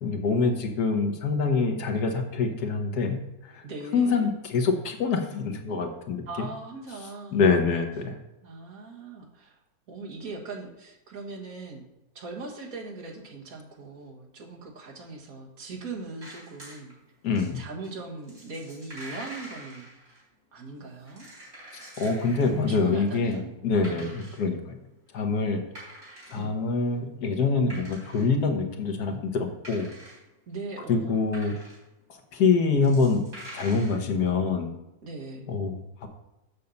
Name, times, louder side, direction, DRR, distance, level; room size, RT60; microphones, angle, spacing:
voice 1, 0.0-3.2 3.5-3.6 3.9-6.5 7.3-8.2 17.2-17.6 22.0-24.8 25.1-25.6 26.3-29.9 30.9-31.5 32.1-33.2 33.5-34.7 35.5-36.1, left 4 dB, 85° left, 4 dB, 1.6 m, -25 dB
voice 2, 3.6-4.3 6.3-7.5 8.4-9.6 9.9-11.9 12.2-16.9 17.5-19.9 20.5-21.3 22.7-23.5 23.9-24.2 26.4-26.5 30.5-31.3 35.0-35.5, right 3 dB, 65° right, 0 dB, 1.8 m, -40 dB
sound 1, 16.2-16.9 17.2-20.2 20.8-23.3 23.7-24.4 25.1-25.2 25.5-26.5 26.9-27.0 27.4-28.3 28.5-28.7 29.4-30.2 30.7-31.9 32.4-32.5 32.7-34.0, right 1 dB, 45° right, 4.0 m, -46 dB
6.4 x 5.3 x 7.0 m, 0.94 s
omnidirectional pair, 1.6 m